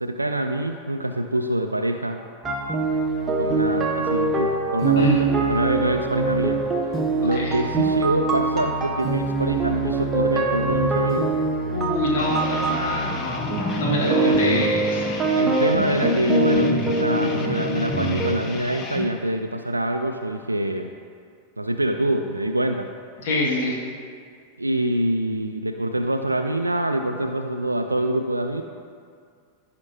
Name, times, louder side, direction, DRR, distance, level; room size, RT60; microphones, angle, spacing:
voice 1, 0.0-2.2 3.4-6.6 7.2-11.3 14.0-14.7 15.3-20.9 21.6-22.9 24.6-28.6, right 1 dB, 85° right, 5 dB, 0.3 m, -25 dB
sound 1, 2.4-18.4, right 3 dB, 20° right, 1.0 m, -24 dB
voice 2, 11.7-15.1 23.2-23.8, left 1 dB, 55° left, -3 dB, 1.6 m, -26 dB
sound 2, 12.2-19.1, left 4 dB, 25° left, 0.9 m, -32 dB
15.0 x 5.1 x 2.7 m, 2.2 s
figure-of-eight pair, 90°, 0 cm